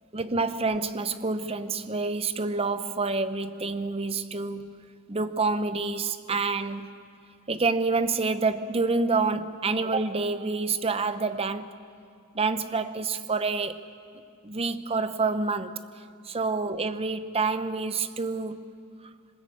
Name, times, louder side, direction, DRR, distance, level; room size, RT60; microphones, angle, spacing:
voice 1, 0.1-4.8 5.1-6.9 7.5-11.8 12.3-13.8 14.4-18.7, right 3 dB, 25° right, 0.8 m, -28 dB
22.0 x 20.0 x 8.5 m
head